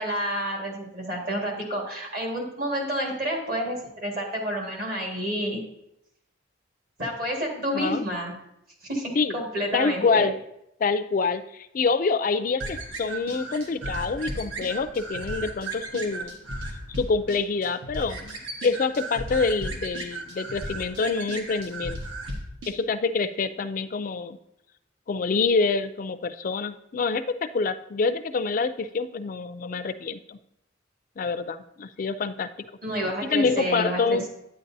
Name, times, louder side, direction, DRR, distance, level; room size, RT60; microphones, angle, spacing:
voice 1, 0.0-5.6 7.0-8.3 8.8-10.3 32.8-34.3, equal, 45° right, 0 dB, 1.7 m, -29 dB
voice 2, 7.7-8.1 9.2-9.4 9.7-10.3 10.8-16.4 17.0-22.0 22.7-24.4 25.1-30.4 31.2-32.5 33.2-34.3, left 4 dB, 40° left, 11 dB, 0.3 m, -26 dB
sound 1, 12.6-22.7, right 2 dB, 80° right, 1.2 m, -35 dB
9.1 x 8.5 x 2.6 m, 0.82 s
head